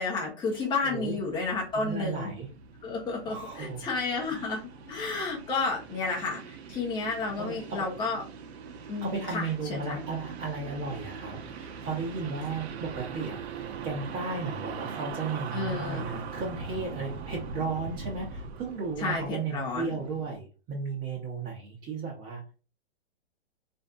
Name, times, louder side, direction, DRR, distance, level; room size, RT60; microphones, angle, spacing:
voice 1, 0.0-2.3 2.8-4.6 4.9-8.2 8.9-10.0 15.5-16.1 19.0-20.0, left 3 dB, 15° left, -2 dB, 0.9 m, -31 dB
voice 2, 0.8-1.2 1.7-2.5 3.3-3.8 4.3-4.4 7.4-7.8 9.0-22.6, right 4 dB, 30° right, -4 dB, 0.9 m, -35 dB
sound 1, 0.8-20.4, right 5 dB, 70° right, 0.7 m, -42 dB
3.3 x 2.6 x 2.4 m, 0.34 s
hypercardioid pair, 125°, 33 cm